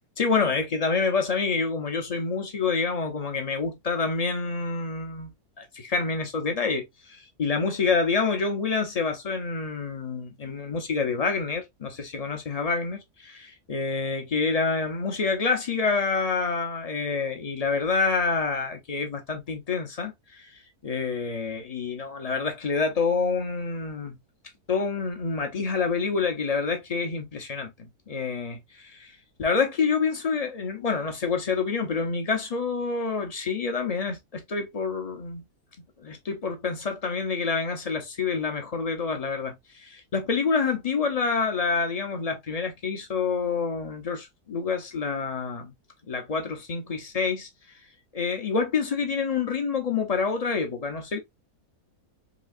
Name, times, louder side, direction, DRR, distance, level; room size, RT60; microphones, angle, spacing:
voice 1, 0.2-20.5 20.8-24.2 24.7-29.1 29.4-35.5 36.0-45.7 46.1-47.5 48.1-51.2, left 4 dB, 45° left, 0.5 m, -27 dB
4.1 x 2.8 x 2.4 m
omnidirectional pair, 1.7 m